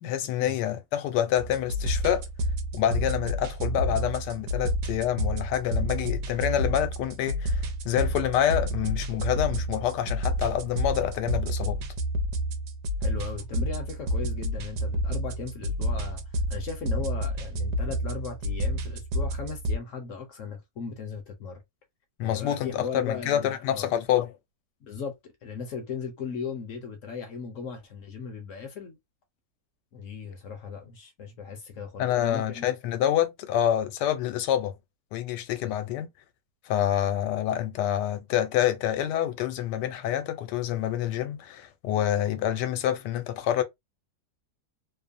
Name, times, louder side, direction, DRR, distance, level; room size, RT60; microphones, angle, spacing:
voice 1, 0.0-2.3 2.7-11.8 22.2-24.3 32.0-34.7 35.1-36.1 36.6-43.6, left 11 dB, 80° left, 1.2 m, -27 dB
sound 1, 1.4-19.8, equal, 75° right, 1.2 m, -30 dB
voice 2, 13.0-16.2 16.5-21.6 22.2-23.9 24.8-29.0 29.9-32.7 35.6-35.7, left 5 dB, 60° left, 0.9 m, -37 dB
3.0 x 2.1 x 2.4 m
omnidirectional pair, 1.8 m